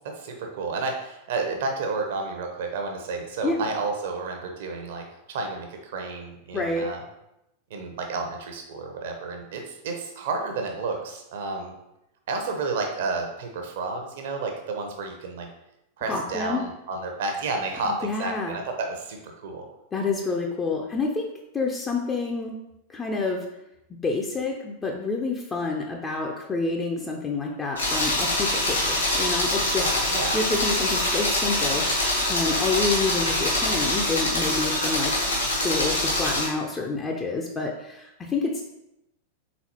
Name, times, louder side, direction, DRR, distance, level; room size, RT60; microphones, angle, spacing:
voice 1, 0.0-7.0 7.7-11.7 12.3-15.5 16.0-19.6 29.8-30.4, right 3 dB, 55° right, 3 dB, 0.7 m, -31 dB
voice 2, 6.5-6.9 16.1-16.6 17.9-18.6 19.9-21.3 21.5-22.6 22.9-23.4 24.0-29.9 30.3-32.0 32.3-35.1 35.6-38.6, left 3 dB, 20° left, 0 dB, 0.4 m, -28 dB
sound 1, 27.8-36.5, left 1 dB, 80° left, 1.5 m, -24 dB
4.1 x 3.9 x 2.9 m, 0.85 s
figure-of-eight pair, 90°, 0 cm